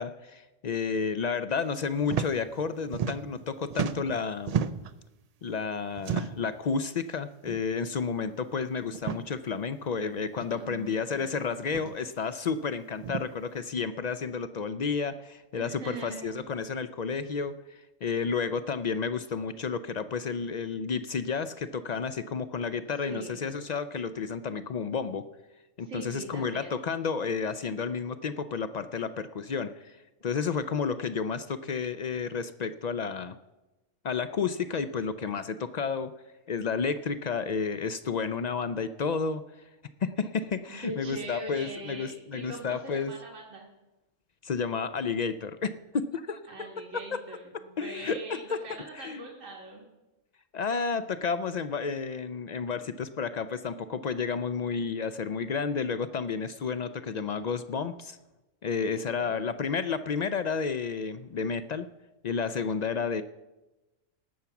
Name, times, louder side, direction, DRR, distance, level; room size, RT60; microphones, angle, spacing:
voice 1, 0.0-4.5 5.4-25.2 25.8-30.0 30.2-33.4 34.0-36.1 36.5-39.4 40.0-43.1 44.4-46.7 46.9-47.2 47.8-48.6 48.9-49.2 50.5-58.2 58.6-61.9 62.2-63.2, left 5 dB, 70° left, 12 dB, 0.4 m, -31 dB
sound 1, 2.0-2.3 2.6-3.4 3.7-5.0 6.0-6.5 7.4-7.6 7.9-8.0 8.9-9.2 10.4-10.5 11.6-11.9 13.0-13.2, right 7 dB, 65° right, 0.3 m, -32 dB
voice 2, 10.6-11.5 15.5-16.4 23.1-23.4 25.8-26.8 40.7-43.7 46.5-49.9 59.0-59.4, right 2 dB, 85° right, -1 dB, 2.1 m, -42 dB
18.5 x 7.0 x 5.9 m, 1.0 s
omnidirectional pair, 1.3 m